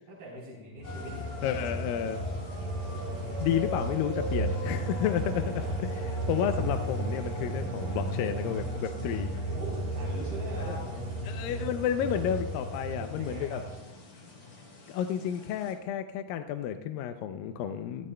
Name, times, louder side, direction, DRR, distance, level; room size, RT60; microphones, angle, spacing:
voice 1, 0.0-1.7 5.2-6.1 9.5-11.2 13.1-13.7, equal, 85° right, -4 dB, 5.6 m, -43 dB
sound 1, 0.8-15.7, left 3 dB, 65° left, 5.6 m, -45 dB
sound 2, 0.8-13.9, right 1 dB, 55° right, 4.3 m, -34 dB
voice 2, 1.4-2.2 3.4-5.5 5.8-5.9 6.3-9.3 10.6-10.8 11.3-13.6 14.9-18.1, left 9 dB, 80° left, 7 dB, 2.2 m, -31 dB
23.0 x 14.5 x 2.2 m, 1.1 s
omnidirectional pair, 4.2 m